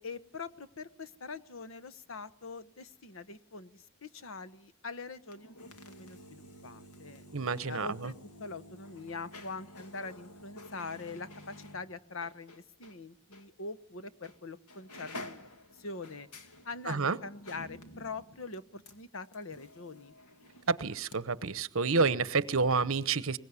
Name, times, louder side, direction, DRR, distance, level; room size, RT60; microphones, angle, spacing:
voice 1, 0.0-7.2 7.6-8.1 8.4-16.3 16.6-20.1, left 4 dB, 65° left, 1.1 m, -43 dB
sound 1, 5.2-13.0 13.3-13.5 14.2-14.4 14.7-21.2 21.4-21.5, left 1 dB, 90° left, 2.2 m, -50 dB
voice 2, 7.3-8.1 16.9-17.2 20.7-23.4, right 4 dB, 65° right, 0.9 m, -29 dB
23.0 x 20.5 x 9.7 m
head